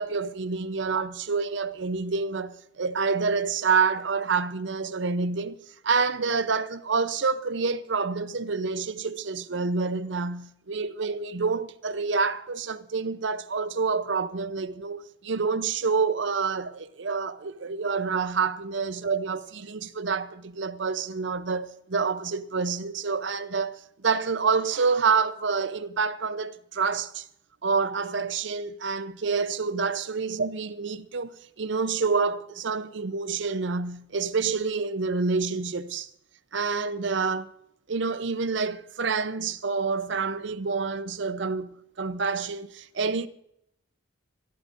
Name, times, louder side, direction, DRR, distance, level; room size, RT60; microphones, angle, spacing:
voice 1, 0.0-5.6 5.8-27.2 27.6-31.3 31.6-36.1 36.5-37.5 37.9-43.3, right 5 dB, 65° right, 0.7 m, -28 dB
25.0 x 13.0 x 2.6 m
head